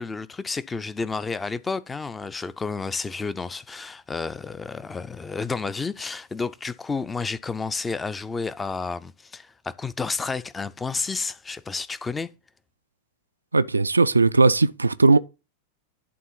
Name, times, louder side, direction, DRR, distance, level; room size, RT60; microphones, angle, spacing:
voice 1, 0.0-12.3, left 4 dB, 15° left, 0.5 m, -31 dB
voice 2, 13.5-15.2, right 3 dB, 80° right, 0.4 m, -18 dB
11.0 x 3.7 x 5.7 m
figure-of-eight pair, 90°, 0 cm